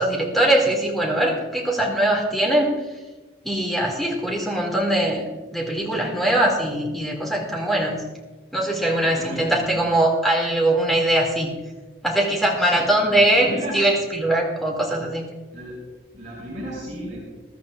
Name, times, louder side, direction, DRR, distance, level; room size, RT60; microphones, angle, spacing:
voice 1, 0.0-2.8 3.4-5.2 5.5-8.1 8.5-11.6 12.0-15.3, right 1 dB, ahead, -2 dB, 2.4 m, -21 dB
voice 2, 9.0-9.9 12.5-14.0 15.5-15.8 16.1-17.2, equal, 40° right, -7 dB, 5.0 m, -34 dB
21.5 x 13.0 x 2.5 m, 1.2 s
head